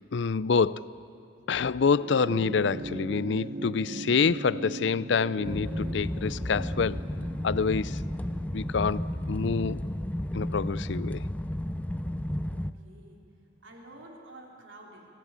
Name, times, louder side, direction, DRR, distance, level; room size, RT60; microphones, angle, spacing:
voice 1, 0.1-0.9 1.5-7.0 7.4-8.0 8.5-9.8 10.3-11.2, left 5 dB, 65° left, 0.5 m, -27 dB
sound 1, 1.9-10.6 11.8-11.9, right 2 dB, 45° right, 0.6 m, -41 dB
sound 2, 5.4-12.7, left 1 dB, 10° left, 0.5 m, -32 dB
voice 2, 12.5-13.3 13.6-15.1, right 1 dB, 80° right, 3.5 m, -50 dB
25.0 x 18.0 x 8.9 m
head